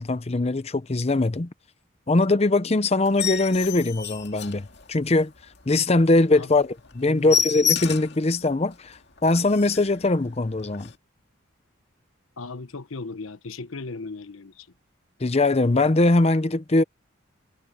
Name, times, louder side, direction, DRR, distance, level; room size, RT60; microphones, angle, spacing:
voice 1, 0.0-1.5 2.1-5.3 5.7-10.9 15.2-16.8, left 2 dB, 30° left, 0.7 m, -21 dB
sound 1, 3.0-5.2 5.6-5.7 6.1-6.2 6.5-6.6 6.9-8.2 8.7-8.8 9.2-9.3 9.5-10.0 10.7-10.9, left 8 dB, 55° left, 2.1 m, -28 dB
voice 2, 7.0-7.5 12.4-14.7, left 3 dB, 85° left, 1.0 m, -37 dB
head